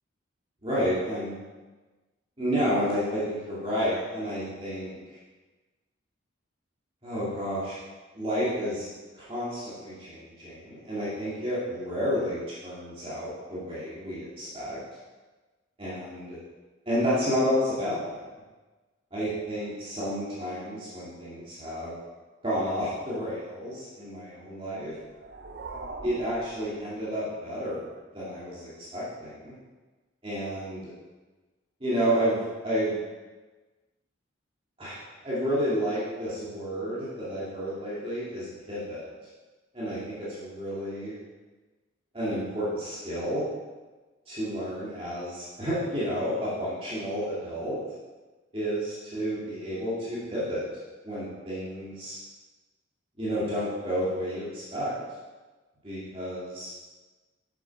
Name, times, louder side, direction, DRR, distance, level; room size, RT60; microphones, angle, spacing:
voice 1, 0.6-1.3 2.4-5.0 7.0-7.8 8.1-8.9 9.1-14.8 15.8-16.4 16.9-18.2 19.1-21.9 22.4-24.9 26.0-27.9 28.1-29.5 30.2-30.9 31.8-32.9 34.8-39.1 39.7-41.2 42.1-43.5 44.3-47.8 48.5-50.6 51.0-52.2 53.2-54.9 55.8-56.7, equal, 25° right, -10 dB, 2.4 m, -30 dB
sound 1, 24.9-27.4, right 3 dB, 55° right, 0.6 m, -43 dB
7.6 x 7.5 x 4.8 m, 1.3 s
head